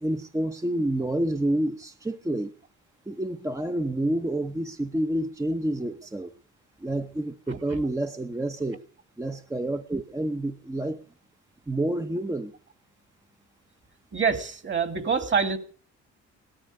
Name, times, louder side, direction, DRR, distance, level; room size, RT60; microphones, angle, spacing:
voice 1, 0.0-2.5 3.1-6.3 6.8-8.8 9.2-11.0 11.7-12.5, right 1 dB, 10° right, 7 dB, 0.8 m, -28 dB
voice 2, 14.1-15.6, right 6 dB, 40° right, 10 dB, 2.4 m, -25 dB
17.5 x 13.0 x 6.5 m, 0.43 s
cardioid pair, 90°, 30 cm